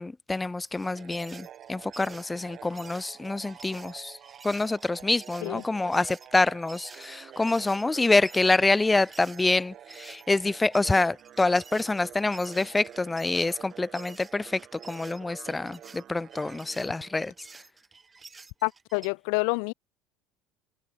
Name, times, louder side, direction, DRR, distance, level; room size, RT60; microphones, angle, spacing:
voice 1, 0.0-4.2 4.4-14.6 14.9-17.3, left 2 dB, 10° left, 0.9 m, -26 dB
sound 1, 0.6-9.4 9.9-19.1, right 4 dB, 15° right, 2.7 m, -50 dB
sound 2, 0.8-17.6, right 10 dB, 30° right, 5.7 m, -48 dB
voice 2, 18.6-19.7, left 40 dB or more, 75° left, 0.4 m, -28 dB
cardioid pair, 175°, 0 cm